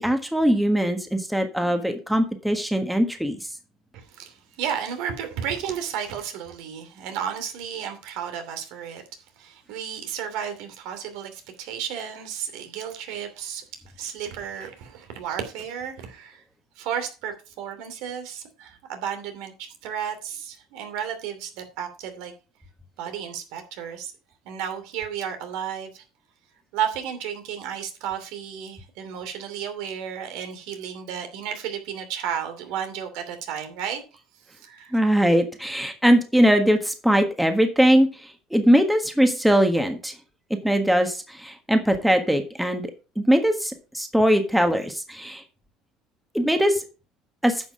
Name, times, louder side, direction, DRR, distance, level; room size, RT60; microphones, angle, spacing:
voice 1, 0.0-3.4 34.9-38.1 38.5-40.1 40.6-42.9 43.2-45.4 46.3-46.8 47.4-47.5, equal, 5° right, 1.5 m, -21 dB
voice 2, 3.9-9.0 9.4-13.6 14.0-16.4 16.8-22.3 23.0-24.1 24.4-26.0 26.7-34.0 34.5-35.0, right 8 dB, 75° right, 2.7 m, -33 dB
9.9 x 5.9 x 5.0 m
supercardioid pair, 120°, 0 cm